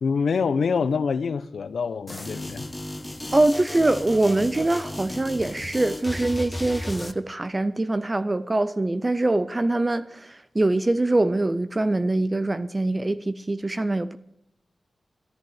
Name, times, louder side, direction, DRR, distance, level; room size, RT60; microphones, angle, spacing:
voice 1, 0.0-2.7, left 5 dB, 75° left, 0.9 m, -25 dB
sound 1, 2.1-7.1, left 1 dB, 10° left, 0.8 m, -35 dB
voice 2, 3.3-14.2, right 2 dB, 20° right, 0.6 m, -23 dB
14.0 x 11.0 x 8.0 m
wide cardioid pair, 140°, 0 cm